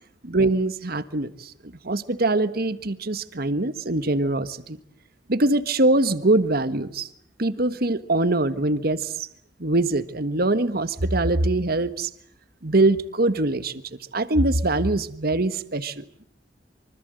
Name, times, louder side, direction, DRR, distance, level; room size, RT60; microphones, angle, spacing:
voice 1, 0.2-4.8 5.3-7.1 7.4-9.3 9.6-12.1 12.6-13.8 14.1-16.2, right 2 dB, 55° right, 13 dB, 1.5 m, -23 dB
26.0 x 25.0 x 7.9 m, 0.66 s
head